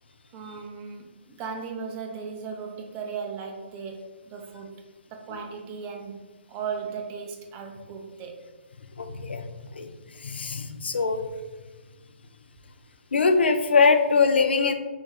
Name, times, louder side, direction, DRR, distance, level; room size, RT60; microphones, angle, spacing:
voice 1, 0.3-4.8 5.1-8.4, right 6 dB, 20° right, 2 dB, 0.5 m, -37 dB
voice 2, 9.0-9.4 9.8-9.9 10.2-11.3 13.1-14.7, left 4 dB, 65° left, 7 dB, 0.5 m, -22 dB
5.2 x 3.3 x 2.3 m, 1.3 s
figure-of-eight pair, 130°, 6 cm